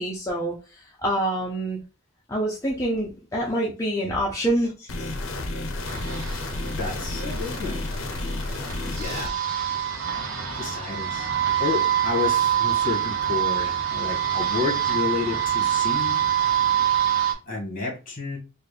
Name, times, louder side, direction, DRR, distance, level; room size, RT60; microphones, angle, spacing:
voice 1, 0.0-1.8 2.3-5.1, right 1 dB, 15° left, -3 dB, 0.5 m, -26 dB
sound 1, 4.9-9.3, left 2 dB, 65° left, 0.6 m, -31 dB
sound 2, 5.9-17.3, right 9 dB, 65° right, 0.9 m, -25 dB
voice 2, 6.6-8.0 8.8-9.4 10.5-11.3 11.6-16.7 17.5-18.4, left 4 dB, 40° left, -1 dB, 1.6 m, -31 dB
4.0 x 2.2 x 3.3 m, 0.31 s
head